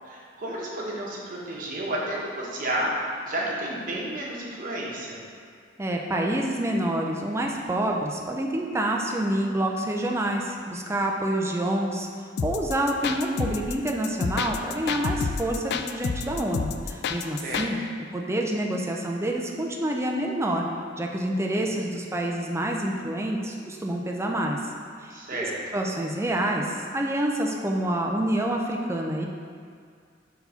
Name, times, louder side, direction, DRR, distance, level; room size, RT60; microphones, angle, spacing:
voice 1, 0.1-2.9 3.3-5.2 17.4-17.7 25.1-25.6, right 1 dB, 45° right, -4 dB, 1.1 m, -31 dB
voice 2, 5.8-12.1 12.4-17.8 18.1-20.7 21.0-24.6 25.0-29.3, right 1 dB, 15° right, 0 dB, 0.5 m, -27 dB
sound 1, 12.4-17.7, left 5 dB, 60° left, 0.3 m, -29 dB
4.5 x 4.1 x 5.6 m, 2.2 s
head